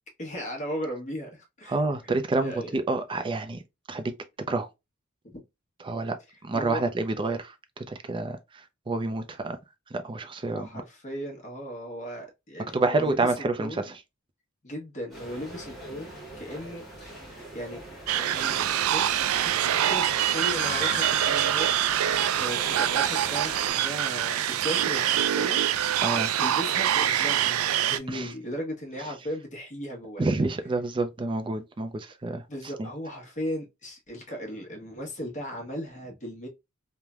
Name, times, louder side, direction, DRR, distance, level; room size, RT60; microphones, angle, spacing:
voice 1, 0.2-1.8 2.4-2.8 5.2-5.4 6.5-6.8 10.5-13.3 13.6-13.9 14.6-17.8 18.1-21.7 21.9-25.6 26.2-30.2 32.5-36.5, equal, 35° left, 1.0 m, -37 dB
voice 2, 1.7-3.6 3.9-4.1 4.5-4.7 5.8-6.2 6.4-9.6 9.9-10.7 12.7-14.0 26.0-26.3 28.1-28.3 30.2-32.4 32.8-32.9, right 3 dB, 25° right, 0.4 m, -28 dB
sound 1, 15.1-23.7, left 1 dB, ahead, 1.0 m, -41 dB
sound 2, 18.1-28.0, right 11 dB, 90° right, 0.3 m, -25 dB
3.2 x 2.1 x 2.3 m
head